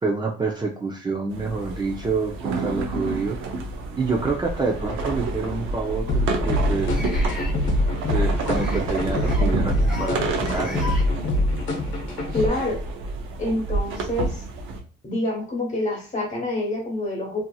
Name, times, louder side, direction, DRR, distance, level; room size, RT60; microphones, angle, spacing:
voice 1, 0.0-3.4 4.0-7.0 8.1-10.9, right 3 dB, 20° right, 0 dB, 0.5 m, -27 dB
sound 1, 1.3-14.8, right 2 dB, 90° right, 0.6 m, -28 dB
sound 2, 6.1-12.5, left 1 dB, 70° left, 0.8 m, -24 dB
sound 3, 6.9-7.5 8.5-8.8 9.1-9.5 9.7-10.1 10.4-11.0, left 2 dB, 5° right, 1.2 m, -36 dB
voice 2, 12.3-12.8 13.4-14.4 15.0-17.4, left 1 dB, 40° left, 1 dB, 1.3 m, -26 dB
2.8 x 2.6 x 2.3 m, 0.43 s
cardioid pair, 90°, 20 cm